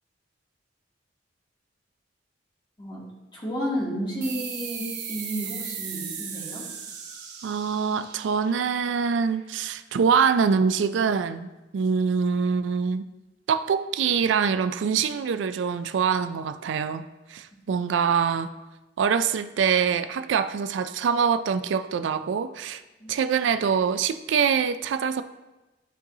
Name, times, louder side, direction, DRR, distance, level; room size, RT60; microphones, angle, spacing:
voice 1, 3.3-6.6 23.0-23.2, equal, 25° left, -5 dB, 2.0 m, -32 dB
sound 1, 4.2-9.4, right 7 dB, 65° right, 1.1 m, -37 dB
voice 2, 7.4-13.1 13.5-18.5 19.0-22.8 23.1-25.2, right 6 dB, 80° right, 11 dB, 0.3 m, -24 dB
11.5 x 4.0 x 2.7 m, 1.1 s
head